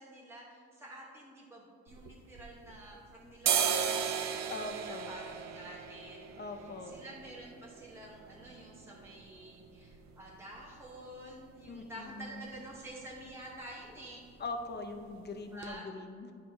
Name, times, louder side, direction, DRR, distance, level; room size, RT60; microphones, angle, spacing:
voice 1, 0.0-14.2 15.5-15.9, right 1 dB, 10° right, -5 dB, 1.1 m, -49 dB
sound 1, 1.9-2.9 3.3-11.0 11.3-11.4 11.7-12.2 12.5-12.7 13.0-13.3 13.5-14.2 14.6-14.7 15.2-15.3 15.6-15.7, right 8 dB, 65° right, 0.6 m, -36 dB
voice 2, 4.5-5.1 6.4-7.0 11.7-12.4 14.4-16.3, left 3 dB, 35° left, 5 dB, 0.7 m, -42 dB
10.5 x 4.4 x 2.8 m, 2.2 s
cardioid pair, 90°, 30 cm